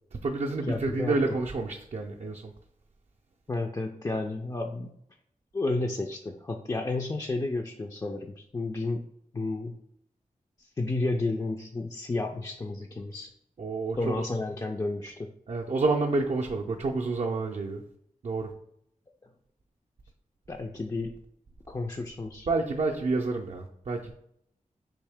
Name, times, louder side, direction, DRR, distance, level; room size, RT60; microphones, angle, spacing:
voice 1, 0.1-2.5 13.6-14.3 15.5-17.8 18.2-18.5 22.5-24.1, right 3 dB, 50° right, 0 dB, 0.4 m, -29 dB
voice 2, 0.6-1.4 3.5-4.9 5.5-9.0 9.3-9.7 10.6-13.3 14.0-15.3 20.5-21.1 21.7-22.5, left 2 dB, 25° left, 2 dB, 0.3 m, -31 dB
3.5 x 2.6 x 3.5 m, 0.71 s
cardioid pair, 50°, 14 cm